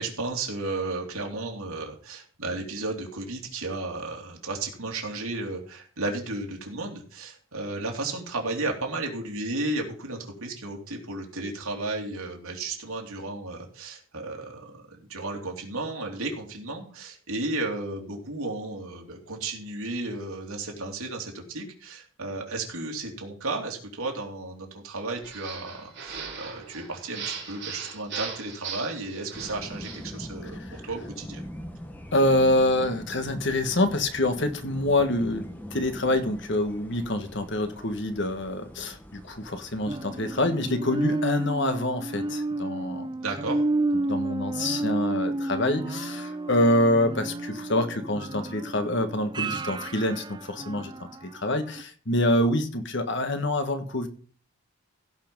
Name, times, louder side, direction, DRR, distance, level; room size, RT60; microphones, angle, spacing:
voice 1, 0.0-31.4 43.2-43.6, right 2 dB, 80° right, 3.1 m, -33 dB
sound 1, 25.2-30.1, right 6 dB, 50° right, 4.2 m, -38 dB
sound 2, 29.3-40.5, equal, 10° left, 1.1 m, -43 dB
voice 2, 32.1-43.1 44.0-54.1, left 1 dB, 55° left, 1.4 m, -26 dB
sound 3, 39.9-51.3 51.8-51.9, right 2 dB, 20° right, 0.4 m, -31 dB
16.0 x 5.7 x 5.4 m
head